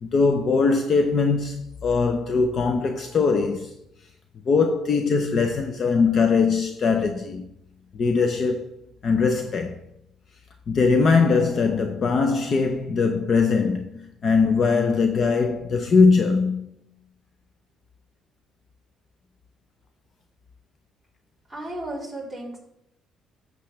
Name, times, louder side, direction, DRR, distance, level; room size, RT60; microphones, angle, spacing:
voice 1, 0.0-3.7 4.5-7.5 7.9-9.8 10.7-16.7, left 4 dB, 40° left, 0.6 m, -21 dB
voice 2, 21.5-22.6, right 1 dB, 10° left, 3.8 m, -34 dB
11.5 x 7.4 x 3.3 m
cardioid pair, 125°, 0 cm